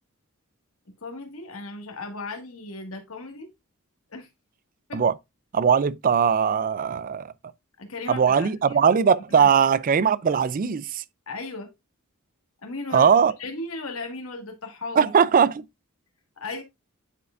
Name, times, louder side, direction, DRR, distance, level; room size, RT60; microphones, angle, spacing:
voice 1, 1.0-3.5 4.1-4.3 4.9-5.0 7.8-8.8 9.3-9.5 11.3-11.7 12.6-13.1 13.4-15.1 16.4-16.6, left 3 dB, 75° left, 1.8 m, -36 dB
voice 2, 5.5-7.3 8.1-11.0 12.9-13.3 15.0-15.6, right 7 dB, 40° right, 0.4 m, -20 dB
9.8 x 4.7 x 2.5 m
head